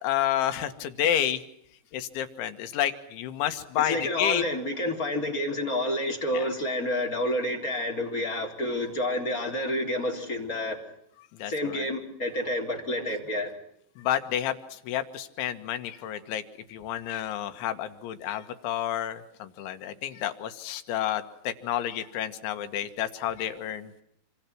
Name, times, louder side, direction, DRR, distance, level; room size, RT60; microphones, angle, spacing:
voice 1, 0.0-1.4 1.9-4.4 6.3-6.5 11.4-11.9 14.0-16.4 16.7-24.0, left 11 dB, 85° left, 9 dB, 3.8 m, -30 dB
voice 2, 3.8-10.8 11.5-13.5, left 1 dB, 20° left, 1 dB, 3.7 m, -29 dB
27.0 x 26.5 x 6.0 m, 0.73 s
omnidirectional pair, 5.3 m